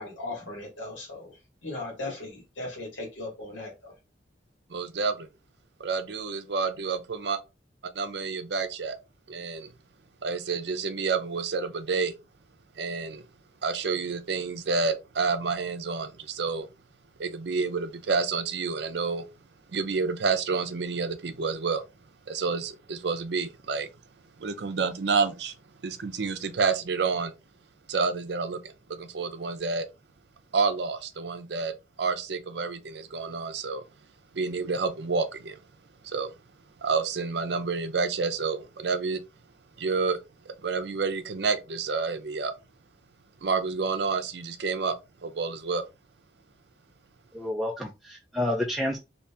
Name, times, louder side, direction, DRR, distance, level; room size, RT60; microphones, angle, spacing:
voice 1, 0.0-1.3 1.6-3.9, left 2 dB, 85° left, 1.5 m, -37 dB
voice 2, 4.7-5.3 5.8-7.4 7.9-9.0 9.3-9.7 10.2-12.1 12.8-13.2 13.6-16.7 17.2-19.2 19.7-21.8 22.3-23.9 24.4-25.5 25.8-27.3 27.9-29.9 30.5-31.7 32.0-33.8 34.3-35.6 36.0-36.3 36.8-39.2 39.8-40.2 40.5-42.5 43.4-45.0 45.2-45.9, right 4 dB, 60° right, 0.5 m, -29 dB
voice 3, 47.3-49.0, left 1 dB, ahead, 0.4 m, -29 dB
2.8 x 2.8 x 3.4 m
head